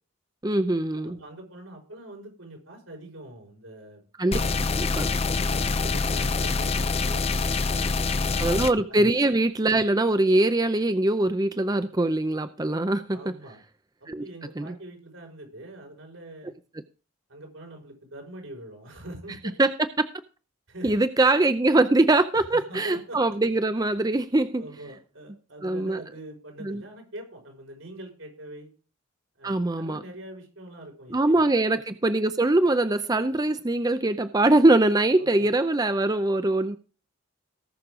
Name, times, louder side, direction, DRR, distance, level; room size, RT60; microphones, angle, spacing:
voice 1, 0.4-1.2 4.2-4.4 4.7-5.1 8.4-13.2 14.1-14.2 14.6-14.7 19.6-19.7 20.8-24.6 25.6-26.0 26.6-26.8 29.4-30.0 31.1-36.8, right 2 dB, 20° right, 0.5 m, -22 dB
voice 2, 0.9-4.1 5.3-8.5 8.9-9.0 13.1-13.6 14.0-16.5 17.3-19.5 20.7-20.9 22.3-23.2 24.6-28.7 29.4-31.6 35.2-35.5, right 1 dB, 80° right, 5.5 m, -44 dB
sound 1, 4.3-8.7, left 4 dB, 30° left, 0.6 m, -25 dB
18.5 x 6.5 x 3.7 m
head